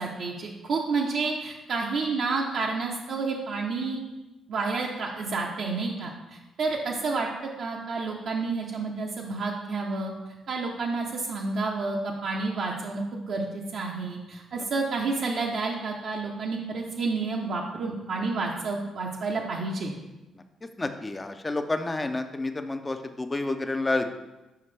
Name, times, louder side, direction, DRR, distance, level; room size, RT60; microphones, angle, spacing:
voice 1, 0.0-4.0 4.5-7.3 7.6-10.1 10.5-19.9, right 3 dB, 65° right, -2 dB, 0.6 m, -30 dB
voice 2, 20.3-24.1, left 2 dB, 20° left, 8 dB, 0.5 m, -30 dB
5.7 x 5.0 x 3.3 m, 1.1 s
cardioid pair, 90°, 0 cm